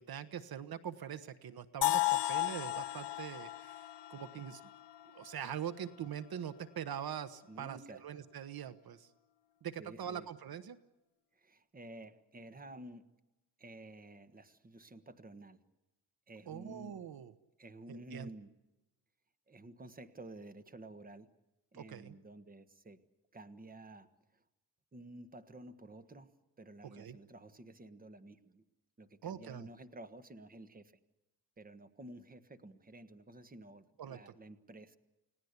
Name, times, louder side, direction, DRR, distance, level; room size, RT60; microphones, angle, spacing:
voice 1, 0.0-3.8 4.1-4.6 5.1-7.8 8.0-9.1 9.6-10.8 16.5-17.3 17.9-18.3 21.7-22.1 27.0-27.2 29.2-29.7 34.0-34.3, right 9 dB, 60° right, 12 dB, 1.1 m, -43 dB
sound 1, 1.8-5.7, left 17 dB, 85° left, 0.8 m, -35 dB
voice 2, 7.5-8.0 9.8-10.3 11.3-13.1 13.6-15.6 16.3-17.0 17.6-18.5 19.5-21.3 21.7-23.0 23.3-24.4 24.9-28.6 29.0-30.9 31.6-35.0, right 1 dB, 20° right, 10 dB, 1.5 m, -52 dB
30.0 x 18.0 x 8.3 m, 0.98 s
wide cardioid pair, 155°, 41 cm